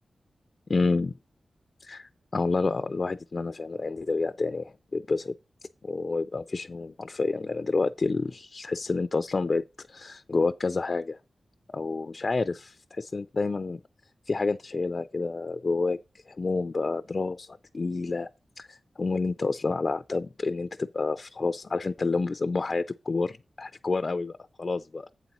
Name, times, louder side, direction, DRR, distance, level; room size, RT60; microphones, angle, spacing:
voice 1, 0.7-1.2 1.8-5.4 5.8-9.6 9.9-11.2 11.7-13.8 14.3-16.0 16.3-18.3 18.6-25.1, left 3 dB, 45° left, 0.4 m, -29 dB
8.2 x 4.1 x 6.0 m
wide cardioid pair, 95°, 0 cm